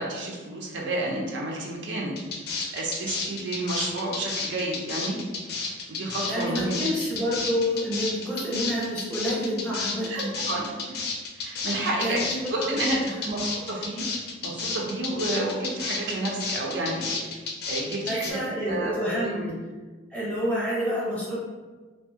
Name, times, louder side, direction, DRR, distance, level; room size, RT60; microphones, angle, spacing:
voice 1, 0.0-2.2 2.7-5.2 5.9-6.8 10.1-11.0 11.4-12.2 12.5-14.0 14.4-17.2 17.7-18.4 18.7-19.5, right 2 dB, 70° right, -2 dB, 0.5 m, -30 dB
sound 1, 2.2-18.3, left 4 dB, 55° left, 0.4 m, -31 dB
voice 2, 6.3-10.3 12.0-13.1 18.1-19.4 20.1-21.3, equal, 5° left, -7 dB, 0.7 m, -28 dB
2.6 x 2.3 x 2.7 m, 1.3 s
head